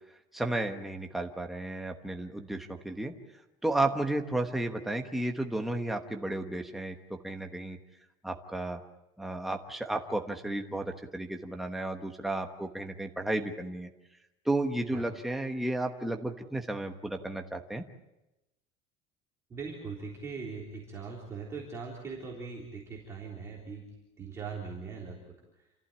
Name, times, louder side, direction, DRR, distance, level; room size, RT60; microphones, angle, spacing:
voice 1, 0.3-3.1 3.6-6.9 7.2-7.8 8.2-8.8 9.2-13.9 14.4-17.8, right 2 dB, ahead, 3 dB, 1.1 m, -33 dB
voice 2, 19.5-23.8 24.2-25.2, right 5 dB, 20° right, -4 dB, 3.7 m, -40 dB
28.5 x 15.0 x 8.7 m, 0.96 s
cardioid pair, 180°, 15 cm